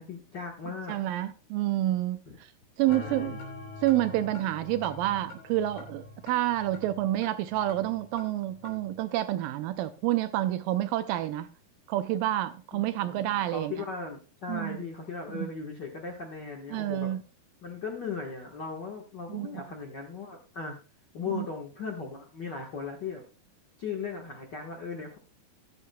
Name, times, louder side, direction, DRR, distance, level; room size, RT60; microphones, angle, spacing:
voice 1, 0.0-1.0 2.3-2.4 2.8-3.3 12.7-17.1 17.6-20.8 21.1-23.2 23.8-25.2, left 5 dB, 90° left, 0.9 m, -38 dB
voice 2, 0.9-2.5 2.8-3.4 3.8-11.5 11.9-13.7 14.5-14.8 15.3-15.5 16.7-17.2 19.3-19.6 21.3-21.5, right 14 dB, 80° right, 2.1 m, -29 dB
sound 1, 2.9-8.9, left 3 dB, 70° left, 4.7 m, -44 dB
13.0 x 10.5 x 2.3 m
omnidirectional pair, 4.3 m